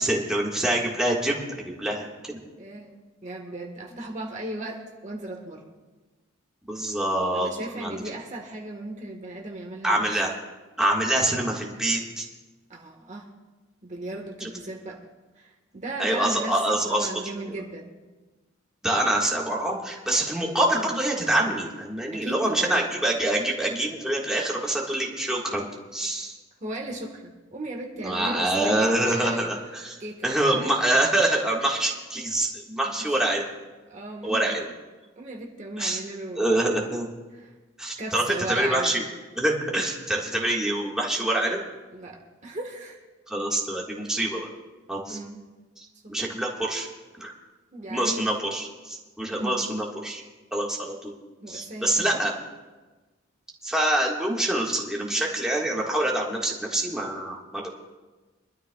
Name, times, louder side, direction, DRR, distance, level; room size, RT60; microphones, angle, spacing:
voice 1, 0.0-2.4 6.7-7.5 7.8-8.0 9.8-10.3 10.8-12.3 14.4-14.5 16.0-17.1 18.8-26.3 28.0-33.5 34.2-34.7 35.8-36.0 36.4-37.1 37.8-38.2 38.5-39.0 39.4-41.6 43.3-44.5 44.9-45.2 45.8-46.9 47.2-47.3 47.9-50.2 50.5-51.1 51.5-52.3 53.6-57.8, right 1 dB, 5° right, -3 dB, 1.7 m, -25 dB
voice 2, 2.6-5.7 7.3-10.1 12.7-13.3 13.8-15.0 15.3-17.9 22.1-22.8 26.6-29.5 30.0-30.7 32.8-33.2 33.9-34.4 35.2-36.5 37.3-37.5 38.0-39.0 41.9-43.0 45.1-45.4 46.0-46.2 47.7-48.5 49.3-49.6 51.4-52.3, right 1 dB, 35° right, 0 dB, 1.4 m, -36 dB
24.5 x 12.5 x 2.3 m, 1.2 s
head